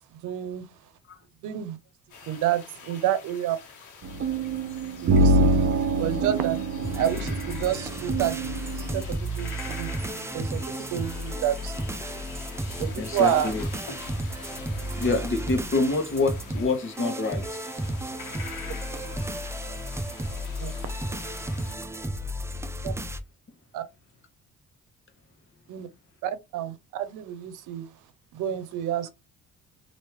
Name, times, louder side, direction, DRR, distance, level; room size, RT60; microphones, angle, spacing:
voice 1, 0.2-0.7 1.4-1.8 2.3-3.6 5.0-5.7 6.0-6.6 7.0-12.2 12.8-13.5 20.6-20.7 22.8-22.9 23.7-23.8 25.7-25.9 26.2-27.9 28.3-29.1, right 11 dB, 85° right, 0.6 m, -29 dB
sound 1, 2.1-21.8, left 5 dB, 80° left, 1.2 m, -45 dB
sound 2, 4.0-9.0, right 2 dB, 45° right, 0.6 m, -25 dB
sound 3, 6.8-23.2, right 1 dB, 10° right, 0.4 m, -33 dB
voice 2, 13.0-13.6 15.0-17.4 20.2-20.3 20.8-20.9, left 3 dB, 40° left, 1.1 m, -26 dB
3.1 x 2.7 x 3.0 m
cardioid pair, 90°, 30 cm